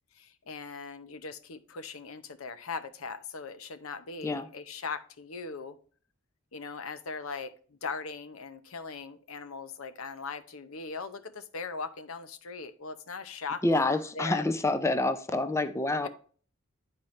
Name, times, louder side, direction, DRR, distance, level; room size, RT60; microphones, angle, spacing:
voice 1, 0.1-5.8 6.5-14.4 16.0-16.1, left 4 dB, 80° left, 11 dB, 0.7 m, -40 dB
voice 2, 13.6-16.1, left 2 dB, 15° left, 10 dB, 0.4 m, -27 dB
10.0 x 4.4 x 3.1 m, 0.43 s
head